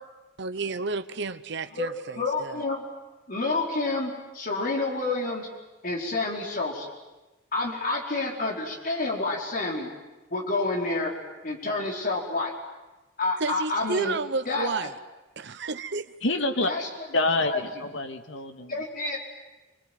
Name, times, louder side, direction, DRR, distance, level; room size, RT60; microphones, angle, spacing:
voice 1, 0.4-2.6 13.4-14.9 15.4-16.1, right 4 dB, 65° right, 10 dB, 0.9 m, -31 dB
voice 2, 1.7-2.8 3.3-5.5 5.8-6.9 7.5-9.9 10.3-11.1 11.4-12.5 13.2-14.2 14.5-14.7 16.7-16.9 17.5-17.6 18.7-19.2, left 3 dB, 50° left, 0 dB, 4.9 m, -29 dB
voice 3, 16.2-16.7 17.1-18.8, left 2 dB, 70° left, 7 dB, 2.0 m, -27 dB
27.5 x 21.5 x 9.3 m, 1.1 s
head